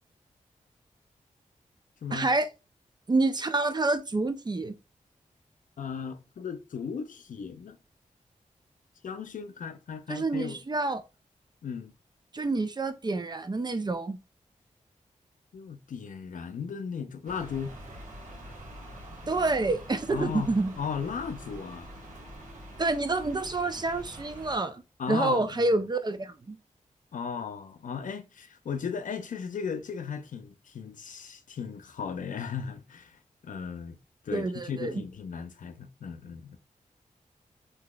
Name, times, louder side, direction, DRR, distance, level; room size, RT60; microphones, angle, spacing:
voice 1, 2.1-2.5 3.1-4.7 10.1-11.0 12.3-14.2 19.3-20.7 22.8-24.8 25.1-26.6 34.3-35.0, right 3 dB, 30° right, 0.5 m, -28 dB
voice 2, 5.8-7.8 9.0-10.6 11.6-11.9 15.5-17.7 20.1-21.9 25.0-25.7 27.1-34.0 34.2-36.6, left 6 dB, 75° left, 0.5 m, -36 dB
sound 1, 17.2-24.6, equal, 70° right, 1.3 m, -45 dB
3.7 x 2.8 x 2.3 m
cardioid pair, 50°, 14 cm